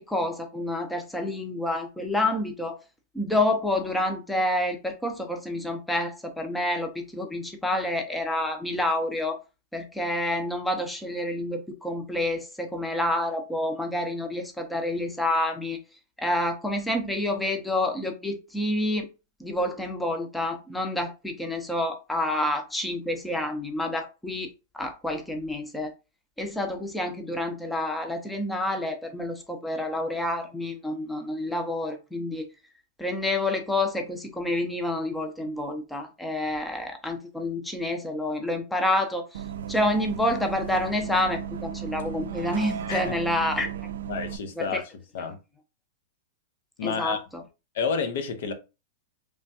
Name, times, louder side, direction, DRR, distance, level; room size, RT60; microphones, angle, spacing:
voice 1, 0.0-2.8 3.1-9.4 9.7-15.8 16.2-19.1 19.4-24.5 24.7-25.9 26.4-32.4 33.0-39.4 39.7-43.7 44.6-44.8 46.8-47.2, left 1 dB, 5° left, 0.5 m, -28 dB
Bus, 39.3-44.4, right 9 dB, 80° right, 0.3 m, -35 dB
voice 2, 44.1-44.8 45.1-45.4 46.8-47.2 47.7-48.5, left 6 dB, 65° left, 0.6 m, -29 dB
3.3 x 2.2 x 2.6 m
hypercardioid pair, 135°, 0 cm